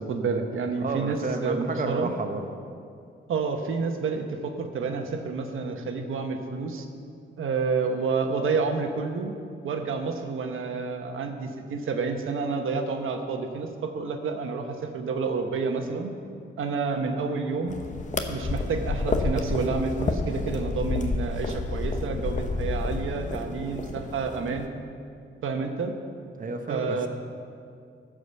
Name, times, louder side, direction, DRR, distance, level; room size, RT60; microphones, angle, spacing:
voice 1, 0.0-2.1 3.3-6.9 7.4-9.3 9.6-16.1 16.6-17.8 18.3-24.7 25.4-25.9 26.7-27.1, right 4 dB, 90° right, 5 dB, 1.1 m, -29 dB
voice 2, 0.8-2.5 26.4-27.1, right 3 dB, 40° right, 5 dB, 1.0 m, -31 dB
sound 1, 17.7-24.7, left 3 dB, 40° left, 0.9 m, -30 dB
14.5 x 5.1 x 6.9 m, 2.3 s
wide cardioid pair, 110°, 20 cm